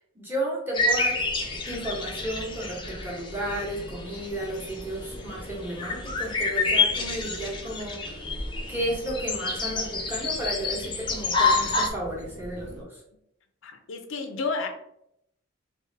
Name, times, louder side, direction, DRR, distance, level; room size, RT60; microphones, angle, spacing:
voice 1, 0.1-1.2 1.7-8.2 8.7-13.0, right 1 dB, 10° right, -3 dB, 1.0 m, -33 dB
sound 1, 0.7-11.9, left 3 dB, 25° left, 0.4 m, -29 dB
sound 2, 1.2-12.8, equal, 65° right, 0.9 m, -43 dB
voice 2, 13.6-14.7, left 4 dB, 75° left, 6 dB, 0.5 m, -31 dB
3.4 x 2.5 x 3.2 m, 0.78 s
head